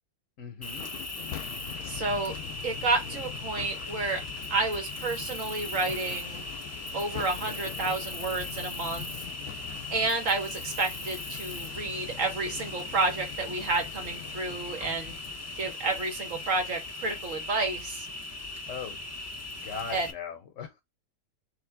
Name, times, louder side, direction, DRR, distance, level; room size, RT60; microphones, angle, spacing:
voice 1, 0.4-0.9 18.7-19.0 19.6-20.8, left 6 dB, 60° left, 1.1 m, -39 dB
Cricket, 0.6-20.1, left 2 dB, 25° left, 0.3 m, -39 dB
sound 1, 0.7-17.1, left 11 dB, 80° left, 1.1 m, -44 dB
voice 2, 1.8-2.3 2.6-4.2 4.5-6.5 6.9-9.3 9.9-15.2 15.5-18.1 19.9-20.1, right 3 dB, 60° right, 1.7 m, -30 dB
3.4 x 3.2 x 3.3 m
omnidirectional pair, 1.6 m